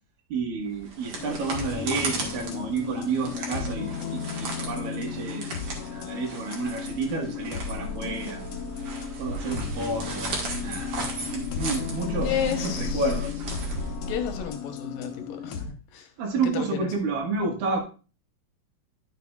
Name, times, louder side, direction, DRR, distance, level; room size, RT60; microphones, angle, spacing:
voice 1, 0.3-8.4 9.2-10.3 10.6-10.9 11.3-12.3 12.6-13.4 16.2-17.8, right 4 dB, 85° right, 2 dB, 3.4 m, -30 dB
sound 1, 0.7-14.4, right 2 dB, 55° right, 2.3 m, -37 dB
sound 2, 1.2-15.7, left 7 dB, 65° left, 1.5 m, -35 dB
Bird, 7.5-14.5, left 2 dB, 20° right, 2.8 m, -39 dB
voice 2, 12.2-13.0 14.1-16.1 16.4-16.9, left 8 dB, 90° left, 6 dB, 2.7 m, -32 dB
10.5 x 6.8 x 2.4 m, 0.35 s
omnidirectional pair, 3.8 m